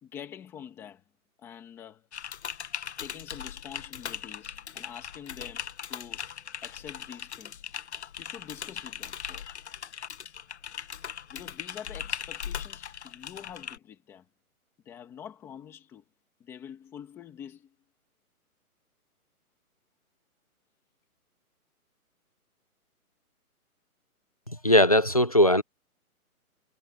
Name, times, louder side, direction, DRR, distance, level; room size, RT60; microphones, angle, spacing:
voice 1, 0.0-1.0 1.4-2.1 3.0-6.3 6.6-7.6 8.2-9.6 11.3-14.2 14.8-16.0 16.4-17.7, left 9 dB, 5° left, 1.4 m, -46 dB
Typing, 2.1-13.8, left 8 dB, 50° left, 1.0 m, -39 dB
voice 2, 24.5-25.6, left 1 dB, 25° left, 0.5 m, -20 dB
hypercardioid pair, 175°, 44 cm